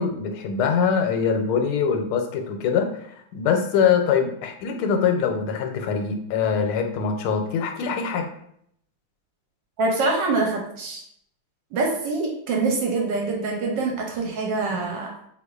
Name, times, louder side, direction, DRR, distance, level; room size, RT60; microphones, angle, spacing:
voice 1, 0.0-2.9 3.3-8.3, left 6 dB, 90° left, 4 dB, 1.5 m, -23 dB
voice 2, 9.8-11.0 11.7-15.1, right 3 dB, 70° right, 0 dB, 1.2 m, -25 dB
4.0 x 2.9 x 2.3 m, 0.69 s
omnidirectional pair, 2.3 m